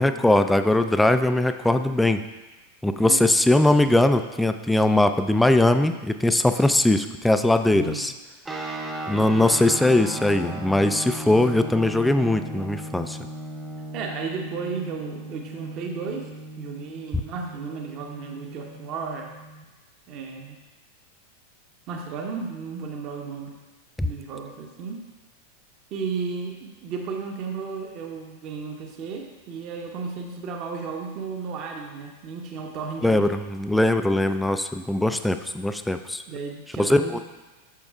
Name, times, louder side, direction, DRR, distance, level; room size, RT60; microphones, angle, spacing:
voice 1, 0.0-2.2 2.8-8.1 9.1-13.2 24.0-24.1 33.0-36.2 36.8-37.2, left 1 dB, 5° left, 9 dB, 0.4 m, -20 dB
voice 2, 7.7-8.0 13.9-16.3 16.6-19.3 20.1-20.6 21.9-23.5 24.0-25.0 25.9-33.3 36.3-37.2, right 5 dB, 40° right, 2 dB, 0.9 m, -34 dB
sound 1, 8.4-19.6, right 1 dB, 10° right, 0.8 m, -37 dB
9.4 x 6.9 x 2.4 m, 1.2 s
figure-of-eight pair, 90°, 0 cm